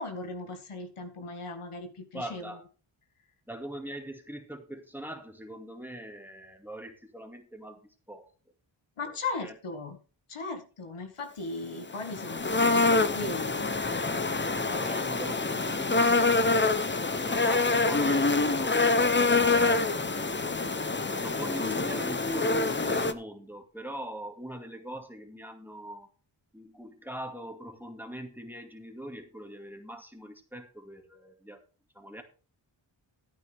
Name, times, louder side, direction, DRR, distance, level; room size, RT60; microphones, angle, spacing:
voice 1, 0.0-2.6 9.0-10.0 10.3-13.7 14.7-14.9, left 3 dB, 80° left, 6 dB, 1.9 m, -37 dB
voice 2, 2.1-2.6 3.5-7.8 8.1-8.3 9.0-9.2 9.4-9.5 13.8-13.9 14.7-20.0 21.1-26.1 26.5-31.6 31.9-32.2, right 1 dB, 5° right, 5 dB, 2.2 m, -42 dB
sound 1, 11.9-23.1, left 3 dB, 20° left, 0.8 m, -26 dB
13.5 x 9.0 x 3.5 m, 0.35 s
wide cardioid pair, 75°, 50 cm